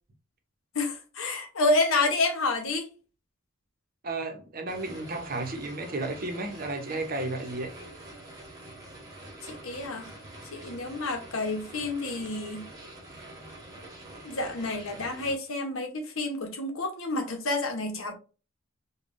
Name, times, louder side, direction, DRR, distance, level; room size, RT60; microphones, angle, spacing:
voice 1, 0.7-2.9 9.5-10.1 10.5-12.7 14.2-18.1, left 2 dB, 80° left, 0.9 m, -29 dB
voice 2, 4.0-7.7, right 2 dB, 45° right, 0.7 m, -33 dB
sound 1, 4.7-15.4, right 1 dB, 20° right, 1.0 m, -46 dB
5.1 x 2.3 x 2.5 m
head